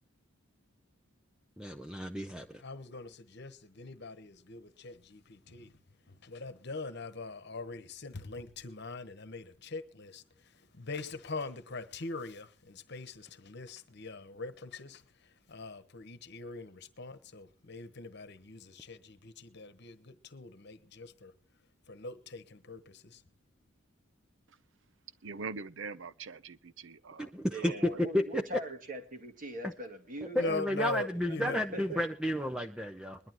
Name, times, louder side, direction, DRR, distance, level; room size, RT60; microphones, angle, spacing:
voice 1, 1.6-2.6 27.2-28.4 29.6-29.7 30.3-33.2, left 1 dB, 5° right, 0.6 m, -32 dB
voice 2, 2.5-5.8 6.1-21.3 21.9-23.2 30.3-31.6, left 3 dB, 55° left, 1.2 m, -42 dB
voice 3, 25.2-27.3 27.6-28.1, right 4 dB, 65° right, 0.7 m, -43 dB
voice 4, 27.5-30.5 31.2-32.0, right 1 dB, 40° right, 2.1 m, -41 dB
21.5 x 11.5 x 3.0 m
head